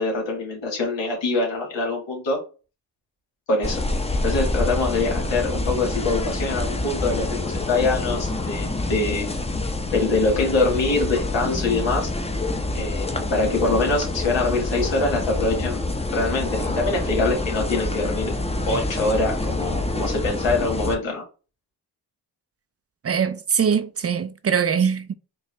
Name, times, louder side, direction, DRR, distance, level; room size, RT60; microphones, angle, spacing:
voice 1, 0.0-2.4 3.5-3.8 4.2-9.3 9.9-12.1 12.7-18.3 18.6-21.2, left 3 dB, 85° left, 1.8 m, -24 dB
sound 1, 3.6-21.0, left 2 dB, 15° left, 0.8 m, -27 dB
voice 2, 23.0-25.1, right 7 dB, 35° right, 0.5 m, -22 dB
4.5 x 2.4 x 3.2 m
supercardioid pair, 50°, 43 cm